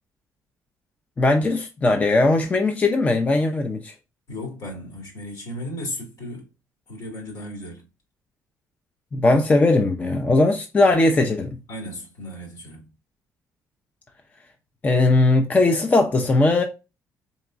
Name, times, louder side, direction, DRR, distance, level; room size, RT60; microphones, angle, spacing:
voice 1, 1.2-3.9 9.1-11.6 14.8-16.6, left 2 dB, 25° left, 0.5 m, -19 dB
voice 2, 4.3-6.5 6.9-7.8 11.7-12.9, left 1 dB, 65° left, 2.0 m, -35 dB
4.0 x 3.5 x 2.4 m
cardioid pair, 120°, 7 cm